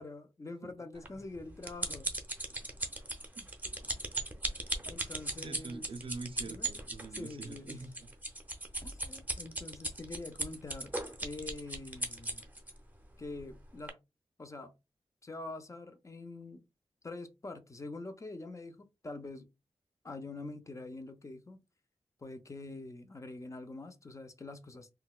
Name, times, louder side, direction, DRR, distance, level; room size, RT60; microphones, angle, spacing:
voice 1, 0.0-2.1 4.9-5.9 6.5-6.7 7.1-7.8 8.8-10.9 11.2-12.5 13.2-14.0 14.4-14.7 15.2-16.6 17.0-19.5 20.0-21.6 22.2-24.9, left 2 dB, 30° left, 0.4 m, -45 dB
voice 2, 0.6-1.1 3.4-3.5 5.4-8.1, right 3 dB, 55° right, 0.5 m, -45 dB
sound 1, 1.1-12.7 13.4-13.5 13.9-14.0, right 2 dB, 15° right, 0.6 m, -38 dB
3.8 x 2.2 x 2.3 m
wide cardioid pair, 105°, 11 cm